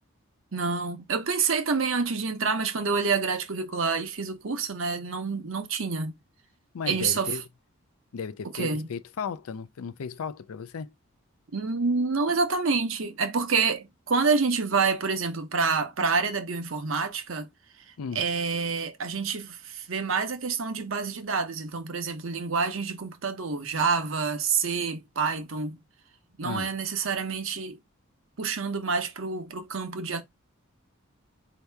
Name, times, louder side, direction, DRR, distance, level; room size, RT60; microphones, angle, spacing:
voice 1, 0.5-6.1 6.9-7.3 8.5-8.9 11.5-17.5 18.1-25.8 26.4-27.8 28.4-30.2, right 5 dB, 70° right, 0.8 m, -27 dB
voice 2, 6.7-7.4 8.1-10.9 18.0-18.3 26.4-26.7, left 6 dB, 90° left, 0.4 m, -35 dB
4.6 x 2.8 x 3.3 m
head